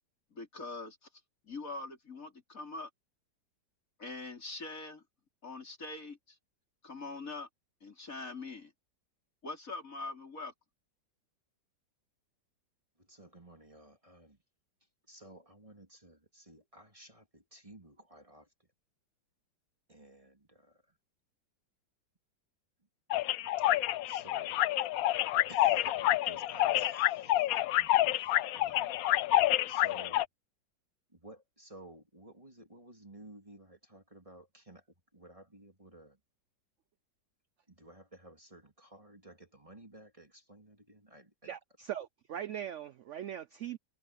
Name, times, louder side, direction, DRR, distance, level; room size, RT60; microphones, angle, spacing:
voice 1, 0.3-1.0 1.4-2.9 4.0-5.0 5.4-6.4 6.8-7.5 7.8-8.7 9.4-10.5, left 3 dB, 45° left, 4.7 m, -43 dB
voice 2, 13.0-14.4 15.1-18.7 19.9-21.0 23.1-23.2 23.6-23.7 24.0-24.6 25.5-28.9 29.4-30.2 31.1-36.2 37.7-41.6, right 1 dB, 20° right, 2.8 m, -55 dB
sound 1, 23.1-30.3, left 14 dB, 75° left, 0.8 m, -28 dB
voice 3, 41.4-43.8, right 10 dB, 70° right, 0.7 m, -40 dB
omnidirectional pair, 2.0 m